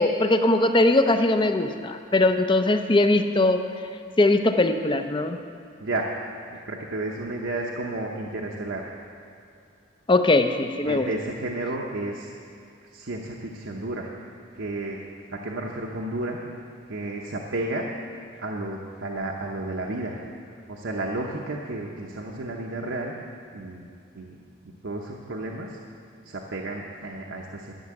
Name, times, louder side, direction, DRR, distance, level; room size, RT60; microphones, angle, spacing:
voice 1, 0.0-3.7 4.2-5.4 10.1-11.1, left 2 dB, 25° left, 8 dB, 0.5 m, -20 dB
voice 2, 5.8-8.9 10.9-12.3 12.9-14.1 14.6-15.0 15.3-16.4 16.9-17.8 18.4-20.2 20.7-23.1 23.5-23.8 24.2-24.4 24.8-25.8 26.2-27.7, right 2 dB, 75° right, -1 dB, 0.9 m, -32 dB
12.0 x 7.0 x 7.6 m, 2.5 s
head